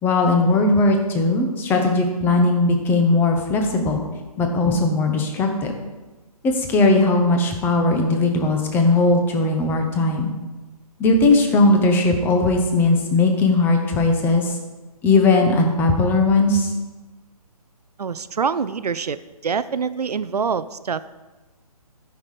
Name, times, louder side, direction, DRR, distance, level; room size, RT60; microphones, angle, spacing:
voice 1, 0.0-4.0 4.4-5.7 6.4-10.3 11.0-14.5 15.0-16.7, left 2 dB, 10° left, 3 dB, 1.0 m, -18 dB
voice 2, 18.0-19.2 19.4-21.1, right 6 dB, 85° right, 14 dB, 0.6 m, -25 dB
13.5 x 5.9 x 5.0 m, 1.2 s
hypercardioid pair, 150°, 20 cm